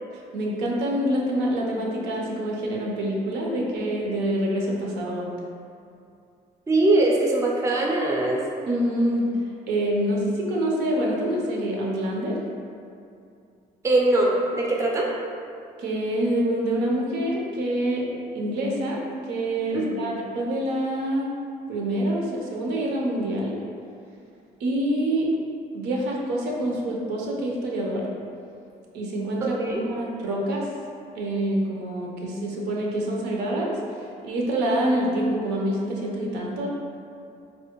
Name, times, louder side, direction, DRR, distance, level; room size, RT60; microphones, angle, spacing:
voice 1, 0.1-5.3 8.7-9.3 9.7-12.4 15.8-18.1 18.3-21.3 21.7-23.6 24.6-25.3 25.7-28.1 28.9-30.7 31.1-33.7 34.0-36.7, right 1 dB, 80° right, -2 dB, 0.6 m, -26 dB
voice 2, 6.7-8.5 13.8-15.1 19.7-20.0 29.4-29.8, right 2 dB, 15° right, -2 dB, 0.4 m, -22 dB
3.4 x 2.1 x 2.8 m, 2.5 s
cardioid pair, 110°, 17 cm